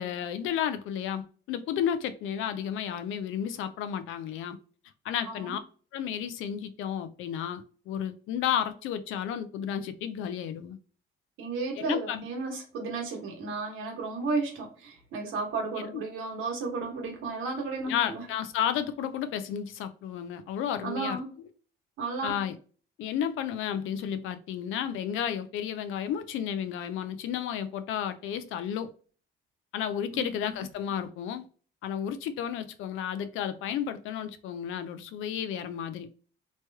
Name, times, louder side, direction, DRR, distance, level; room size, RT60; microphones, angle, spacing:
voice 1, 0.0-4.6 5.0-5.6 5.9-10.8 11.8-12.2 15.8-16.0 17.9-21.2 22.2-22.6 23.0-28.9 29.7-31.5 31.8-36.1, left 9 dB, 90° left, 0.5 m, -32 dB
voice 2, 11.4-18.2 20.8-21.3 22.0-22.3 30.1-30.2, right 3 dB, 90° right, 1.3 m, -33 dB
3.1 x 3.0 x 2.2 m
cardioid pair, 90°, 20 cm